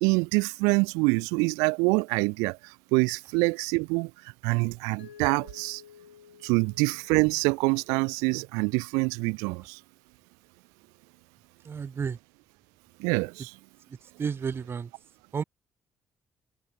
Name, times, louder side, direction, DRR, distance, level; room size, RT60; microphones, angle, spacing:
voice 1, 0.0-4.1 4.4-5.8 6.4-9.8 13.0-13.5, right 30 dB, 75° right, 0.4 m, -25 dB
Mallet percussion, 5.0-7.9, left 9 dB, 85° left, 4.9 m, -52 dB
voice 2, 11.6-12.2 13.9-14.9 15.3-15.4, right 6 dB, 40° right, 1.0 m, -32 dB
figure-of-eight pair, 40°, 6 cm